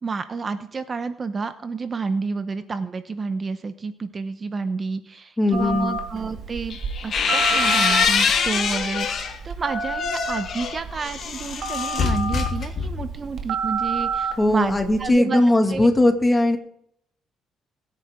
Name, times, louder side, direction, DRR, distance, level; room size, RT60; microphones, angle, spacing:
voice 1, 0.0-6.8 7.0-15.4 15.7-15.9, right 4 dB, 35° right, 10 dB, 0.9 m, -30 dB
voice 2, 5.4-5.9 14.4-16.6, left 1 dB, 15° left, 6 dB, 2.0 m, -19 dB
Telephone, 5.5-15.1, right 4 dB, 65° right, 2.3 m, -30 dB
sound 1, 6.7-9.4 9.8-13.2, left 6 dB, 55° left, 2.3 m, -24 dB
21.5 x 9.9 x 3.7 m, 0.71 s
cardioid pair, 110°, 0 cm